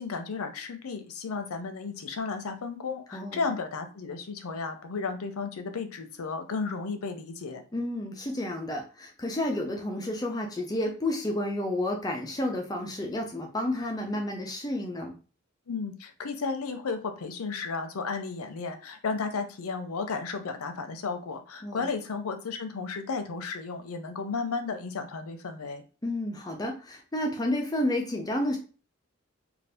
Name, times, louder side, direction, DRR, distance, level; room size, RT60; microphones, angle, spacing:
voice 1, 0.0-7.6 15.7-25.8, left 4 dB, 85° left, 7 dB, 0.6 m, -33 dB
voice 2, 3.1-3.5 7.7-15.1 21.6-21.9 26.0-28.6, left 1 dB, 15° left, 2 dB, 0.4 m, -31 dB
2.6 x 2.4 x 3.4 m, 0.36 s
head